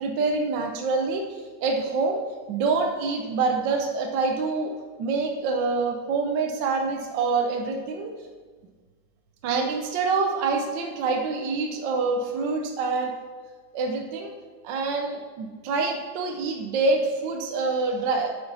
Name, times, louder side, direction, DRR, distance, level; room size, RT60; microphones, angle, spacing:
voice 1, 0.0-2.2 2.5-4.7 5.0-8.1 9.4-13.1 13.7-14.3 14.6-18.3, right 4 dB, 80° right, 3 dB, 1.4 m, -26 dB
6.9 x 5.8 x 5.5 m, 1.5 s
omnidirectional pair, 2.0 m